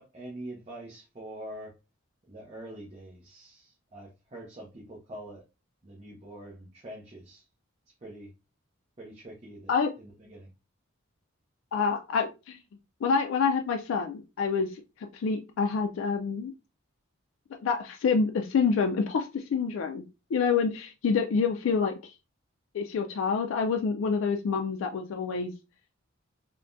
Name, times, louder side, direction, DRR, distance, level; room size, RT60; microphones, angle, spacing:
voice 1, 0.0-1.8 2.3-5.4 5.8-7.5 8.0-8.3 9.0-10.5, right 1 dB, 30° right, -3 dB, 0.7 m, -44 dB
voice 2, 11.7-12.6 13.0-14.8 15.1-16.5 17.6-20.0 20.3-22.1 22.7-25.5, left 5 dB, 80° left, 4 dB, 0.3 m, -27 dB
3.3 x 2.2 x 2.5 m, 0.28 s
head